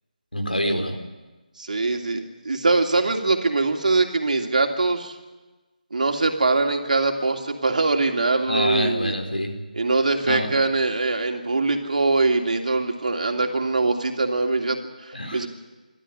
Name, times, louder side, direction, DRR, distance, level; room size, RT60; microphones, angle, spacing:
voice 1, 0.3-1.0 8.5-9.6 10.2-10.5 15.1-15.5, equal, 90° left, 4 dB, 4.2 m, -26 dB
voice 2, 1.6-5.1 5.9-9.1 9.7-15.5, right 3 dB, 60° right, 4 dB, 2.9 m, -23 dB
27.0 x 13.0 x 10.0 m, 1.2 s
figure-of-eight pair, 155°, 5 cm